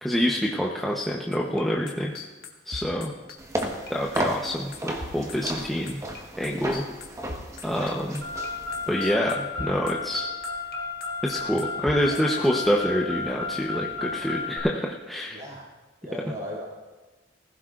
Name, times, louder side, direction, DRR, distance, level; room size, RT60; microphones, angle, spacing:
voice 1, 0.0-2.1 2.7-3.1 3.9-6.0 6.4-6.8 7.6-8.2 8.9-10.3 11.2-15.4, equal, ahead, -3 dB, 0.9 m, -26 dB
sound 1, 1.3-8.5 8.7-12.5, left 4 dB, 60° left, 1.6 m, -39 dB
sound 2, 3.4-9.0, right 1 dB, 20° right, 1.3 m, -34 dB
Car, 8.2-14.6, left 4 dB, 75° right, 4.5 m, -33 dB
voice 2, 15.3-15.7 16.0-16.6, equal, 50° right, -7 dB, 4.7 m, -37 dB
20.5 x 15.5 x 2.5 m, 1.2 s
head